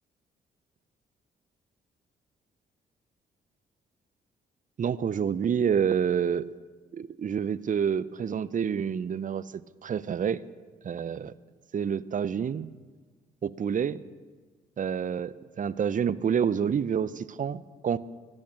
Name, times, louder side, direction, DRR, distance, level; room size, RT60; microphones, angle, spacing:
voice 1, 4.8-6.5 6.9-10.4 10.8-11.3 11.7-12.7 13.4-14.0 14.8-18.0, right 7 dB, 40° right, 17 dB, 0.6 m, -28 dB
14.5 x 8.6 x 7.6 m, 1.5 s
hypercardioid pair, 50°, 21 cm